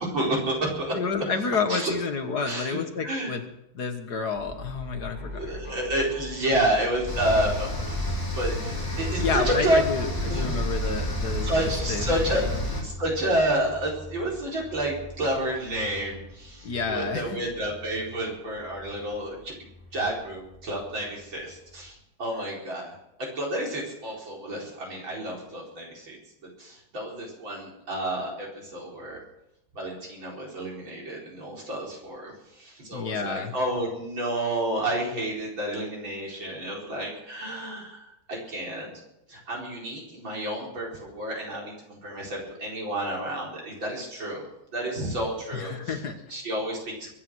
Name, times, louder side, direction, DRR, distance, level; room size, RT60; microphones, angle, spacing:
voice 1, 0.0-1.0 1.7-1.9 2.4-2.8 3.0-3.3 5.2-8.0 8.4-9.8 10.3-10.5 11.4-19.5 19.9-22.9 23.2-26.2 26.6-29.2 29.7-38.9 39.3-44.4 44.7-46.0 46.3-47.1, right 1 dB, 70° right, -2 dB, 5.3 m, -30 dB
voice 2, 0.9-5.8 9.2-11.5 11.9-12.1 12.3-12.5 16.6-17.4 32.9-33.5 45.5-46.2, left 5 dB, 55° left, 6 dB, 1.9 m, -30 dB
sound 1, 4.3-21.9, left 1 dB, 10° right, 5.9 m, -41 dB
sound 2, 7.1-12.8, left 1 dB, 10° left, 2.9 m, -30 dB
22.5 x 9.7 x 6.3 m, 0.84 s
omnidirectional pair, 2.2 m